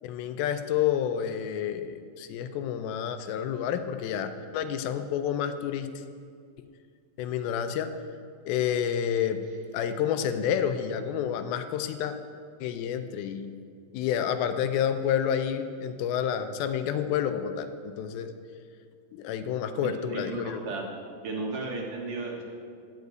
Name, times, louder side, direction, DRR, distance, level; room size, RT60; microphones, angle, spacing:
voice 1, 0.0-5.9 7.2-7.9 8.5-9.4 9.7-12.1 12.6-13.5 13.9-18.3 19.1-20.6, left 9 dB, 85° left, 9 dB, 2.5 m, -29 dB
voice 2, 19.8-20.9 21.2-22.4, right 3 dB, 65° right, -1 dB, 3.0 m, -34 dB
14.5 x 5.3 x 9.4 m, 2.2 s
omnidirectional pair, 4.3 m